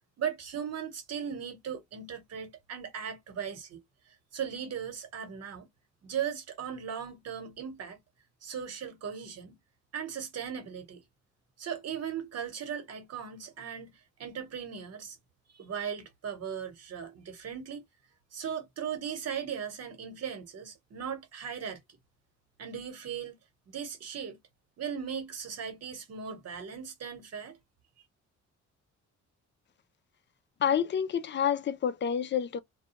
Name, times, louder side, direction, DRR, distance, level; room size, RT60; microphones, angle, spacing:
voice 1, 0.2-3.8 4.3-5.7 6.0-8.0 8.4-9.6 9.9-11.0 11.6-13.9 14.2-15.2 15.5-17.8 18.3-21.8 22.6-23.4 23.7-24.4 24.8-27.6, right 8 dB, 55° right, 1.2 m, -38 dB
voice 2, 30.6-32.6, left 8 dB, 40° left, 0.5 m, -28 dB
2.3 x 2.3 x 2.8 m
cardioid pair, 90°, 30 cm